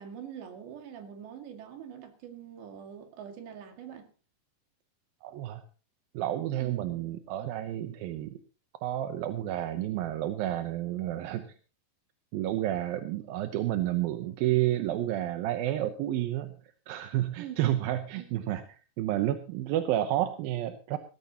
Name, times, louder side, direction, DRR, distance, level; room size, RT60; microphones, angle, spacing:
voice 1, 0.0-4.1 6.6-6.8 17.4-17.6 18.2-18.3, right 8 dB, 90° right, 4.4 m, -44 dB
voice 2, 5.2-5.6 6.1-8.4 8.8-11.5 12.3-16.6 16.9-21.0, right 13 dB, 75° right, 2.4 m, -30 dB
19.0 x 15.5 x 2.9 m
omnidirectional pair, 4.8 m